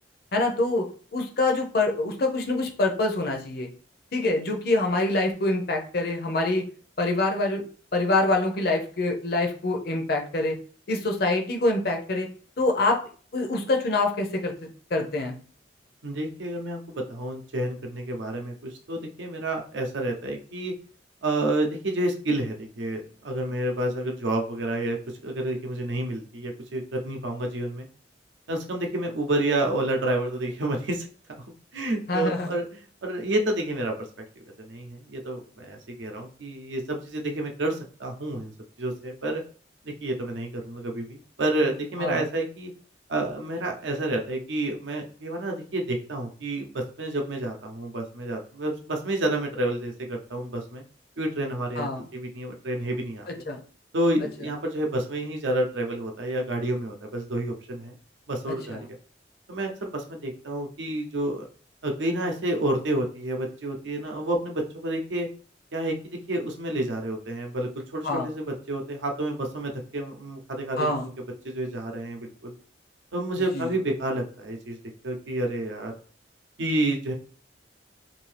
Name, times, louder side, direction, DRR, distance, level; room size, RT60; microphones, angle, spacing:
voice 1, 0.3-0.9 1.1-3.7 4.1-6.7 7.0-7.6 7.9-10.6 10.9-12.3 12.6-13.0 13.3-15.3 32.1-32.5 42.0-42.2 51.8-52.1 53.5-53.6 58.7-58.8 68.0-68.3 70.8-71.1 73.5-73.7, left 2 dB, 55° left, 3 dB, 0.6 m, -25 dB
voice 2, 16.0-20.7 21.2-25.0 25.2-27.9 28.5-31.1 31.7-34.1 34.4-38.5 38.8-39.4 39.8-42.7 43.1-50.8 51.2-53.3 53.9-57.9 58.3-58.8 59.5-61.5 61.8-65.3 65.7-70.9 71.4-72.5 73.1-74.8 75.0-75.9 76.6-77.1, right 1 dB, 85° right, 2 dB, 0.7 m, -29 dB
2.7 x 2.7 x 3.3 m, 0.43 s
head